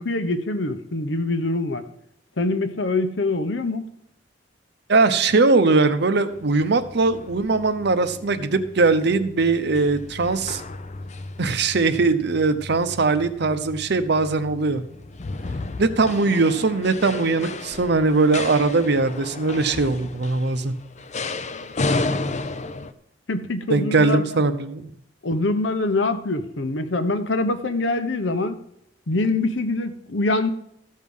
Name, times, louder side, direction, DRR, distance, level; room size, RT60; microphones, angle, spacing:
voice 1, 0.0-1.8 2.4-3.9 23.3-24.4 25.2-28.6 29.1-30.5, left 2 dB, 70° left, 10 dB, 1.0 m, -24 dB
voice 2, 4.9-10.6 11.4-14.8 15.8-20.7 23.7-24.9, right 3 dB, 65° right, 11 dB, 0.8 m, -20 dB
sound 1, 6.3-22.9, left 3 dB, 40° left, 0.6 m, -33 dB
13.5 x 6.4 x 5.5 m, 0.74 s
head